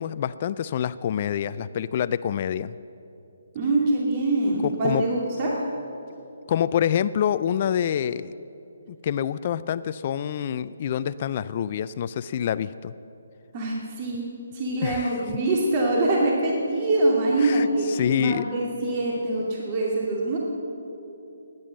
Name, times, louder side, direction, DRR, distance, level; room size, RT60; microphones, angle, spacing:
voice 1, 0.0-2.7 4.6-5.0 6.5-8.3 8.9-12.9 14.8-15.1 17.4-18.4, left 9 dB, 40° left, 15 dB, 0.4 m, -26 dB
voice 2, 3.5-5.6 13.5-14.3 14.5-20.4, right 2 dB, 35° right, -3 dB, 2.4 m, -24 dB
16.5 x 10.5 x 7.7 m, 2.8 s
hypercardioid pair, 150°, 0 cm